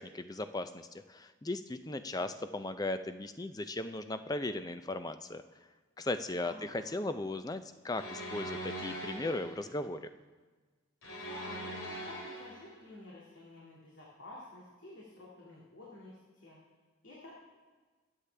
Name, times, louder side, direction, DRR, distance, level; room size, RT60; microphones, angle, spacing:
voice 1, 0.0-5.4 6.0-10.1, left 2 dB, 20° left, 10 dB, 0.4 m, -37 dB
voice 2, 6.5-6.9 11.1-16.6 17.0-17.3, left 1 dB, 70° left, -5 dB, 2.2 m, -51 dB
sound 1, 8.0-9.7 11.0-12.7, equal, 90° left, 2.6 m, -42 dB
21.5 x 8.2 x 3.4 m, 1.4 s
head